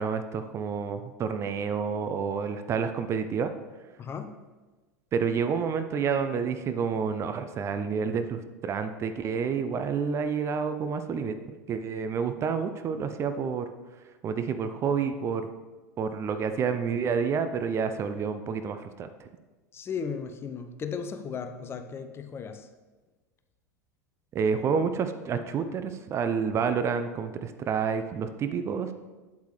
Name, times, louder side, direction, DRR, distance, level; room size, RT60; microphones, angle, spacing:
voice 1, 0.0-3.5 5.1-13.7 14.2-15.5 16.0-19.3 24.3-28.9, right 6 dB, 30° right, 9 dB, 0.5 m, -29 dB
voice 2, 19.7-22.7, left 6 dB, 25° left, 7 dB, 0.7 m, -36 dB
8.3 x 8.0 x 3.2 m, 1.2 s
figure-of-eight pair, 80°, 9 cm